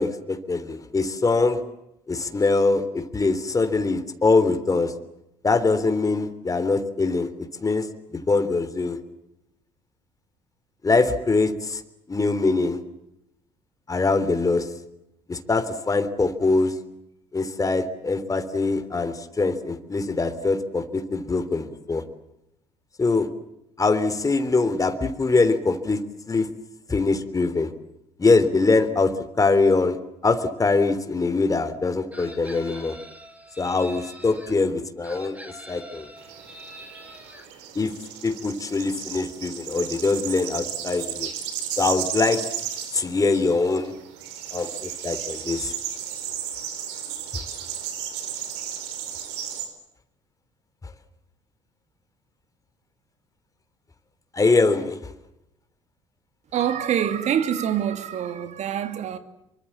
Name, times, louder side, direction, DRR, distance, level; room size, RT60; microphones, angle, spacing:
voice 1, 0.0-1.6 2.1-4.9 5.4-7.3 7.6-7.9 8.1-9.0 10.8-11.8 12.1-12.8 13.9-14.7 15.3-16.7 17.3-22.0 23.0-23.3 23.8-26.0 26.3-26.5 26.9-27.7 28.2-30.0 30.2-33.0 33.6-35.4 35.7-36.1 37.8-37.9 38.2-41.3 41.8-42.4 42.9-43.9 44.5-45.7 47.3-47.4 54.3-55.0, left 3 dB, 25° left, 3.4 m, -23 dB
Chicken rooster, 32.1-34.5 35.0-37.5, right 1 dB, 10° right, 6.1 m, -44 dB
sound 1, 36.2-49.7, right 9 dB, 75° right, 4.7 m, -34 dB
voice 2, 56.5-59.2, right 9 dB, 55° right, 2.9 m, -25 dB
27.0 x 24.0 x 7.4 m
hypercardioid pair, 60°, 14 cm